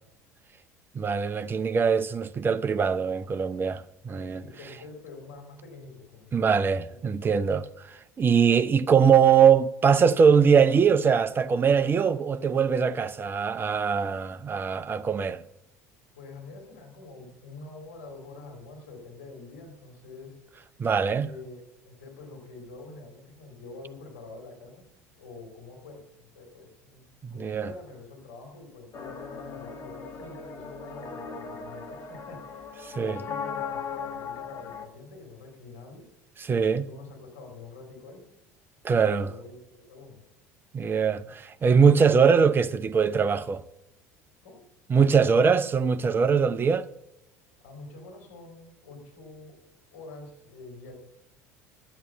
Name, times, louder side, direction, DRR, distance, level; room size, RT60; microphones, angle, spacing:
voice 1, 0.9-4.4 6.3-15.4 20.8-21.3 27.2-27.7 32.8-33.2 36.4-36.9 38.8-39.3 40.7-43.6 44.9-46.9, right 6 dB, 25° right, 0.7 m, -22 dB
voice 2, 4.2-6.4 6.8-7.0 16.1-20.6 21.2-24.8 25.2-27.1 27.3-36.1 36.9-38.2 38.9-40.2 41.2-41.3 44.4-44.6 47.6-49.6 49.9-51.0, left 3 dB, 65° left, 3.8 m, -46 dB
sound 1, 28.9-34.9, left 6 dB, 40° left, 1.6 m, -38 dB
12.5 x 8.2 x 5.5 m
figure-of-eight pair, 65°, 8 cm